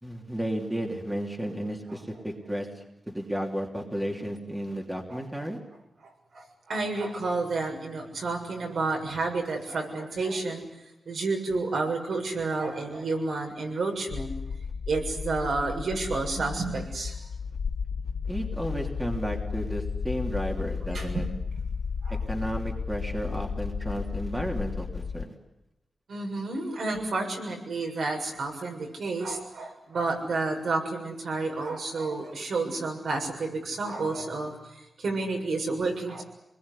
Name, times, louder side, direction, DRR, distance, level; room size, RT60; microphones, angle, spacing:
voice 1, 0.0-5.6 18.3-21.3 22.3-25.3, equal, 10° right, 1 dB, 3.1 m, -33 dB
voice 2, 5.1-5.5 6.3-10.6 11.1-14.3 14.9-17.2 20.9-21.3 22.0-22.2 26.1-36.2, right 3 dB, 75° right, 2 dB, 7.0 m, -30 dB
sound 1, 14.1-25.3, left 5 dB, 75° left, 1.1 m, -33 dB
27.0 x 21.5 x 10.0 m, 0.95 s
wide cardioid pair, 160°, 0 cm